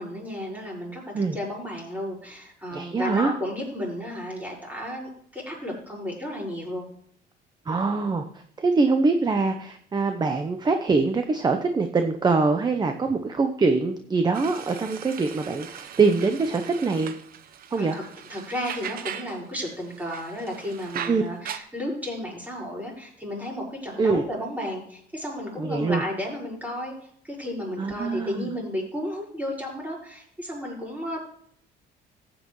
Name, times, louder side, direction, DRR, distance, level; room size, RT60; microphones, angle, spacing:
voice 1, 0.0-6.9 17.8-18.0 18.3-31.2, left 1 dB, 10° right, -3 dB, 5.5 m, -33 dB
voice 2, 2.7-3.3 7.7-8.3 8.6-17.2 17.7-18.0 21.1-21.2 24.0-24.2 25.6-26.0 27.8-28.5, right 4 dB, 25° right, 7 dB, 0.9 m, -23 dB
sound 1, 14.3-19.4 19.7-21.6, right 9 dB, 60° right, 1.0 m, -39 dB
14.5 x 8.9 x 3.2 m, 0.63 s
cardioid pair, 110°, 17 cm